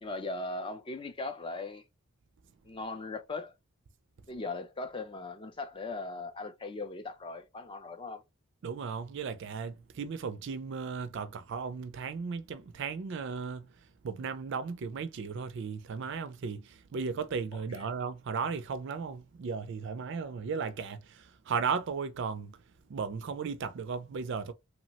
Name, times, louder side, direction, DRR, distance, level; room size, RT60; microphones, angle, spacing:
voice 1, 0.0-1.8 2.7-3.5 4.3-8.2 17.5-17.9, left 3 dB, 25° left, 0.4 m, -39 dB
voice 2, 8.6-13.7 14.0-22.6 22.9-24.5, right 5 dB, 55° right, 0.4 m, -36 dB
3.0 x 2.0 x 2.8 m
head